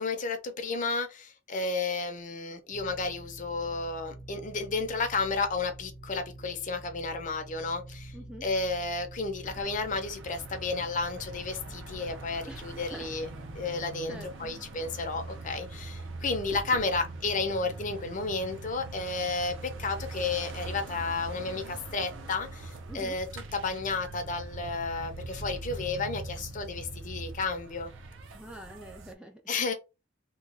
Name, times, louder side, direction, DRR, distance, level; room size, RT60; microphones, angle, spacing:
voice 1, 0.0-8.1 8.4-13.3 13.6-27.9 29.5-29.7, left 3 dB, 40° left, 0.6 m, -32 dB
sound 1, 2.7-13.6, right 1 dB, 30° right, 0.8 m, -47 dB
voice 2, 8.1-8.5 12.5-13.1 14.1-14.5 22.9-23.2 28.3-29.4, right 1 dB, 5° right, 0.3 m, -45 dB
sound 2, 9.4-29.1, right 2 dB, 65° right, 0.6 m, -42 dB
3.0 x 2.2 x 3.7 m
head